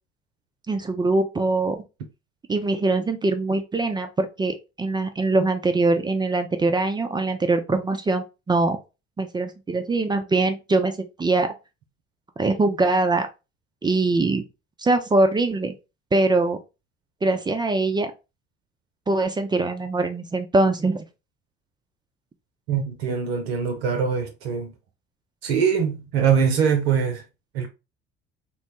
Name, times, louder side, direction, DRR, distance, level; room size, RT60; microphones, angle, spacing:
voice 1, 0.7-1.8 2.5-8.8 9.2-11.5 12.4-13.3 13.8-14.4 14.8-15.7 16.1-16.6 17.2-18.1 19.1-21.1, right 2 dB, 15° right, 0.4 m, -22 dB
voice 2, 22.7-24.7 25.4-27.2 27.5-27.7, right 7 dB, 75° right, 0.6 m, -23 dB
2.9 x 2.1 x 2.8 m
figure-of-eight pair, 55°, 31 cm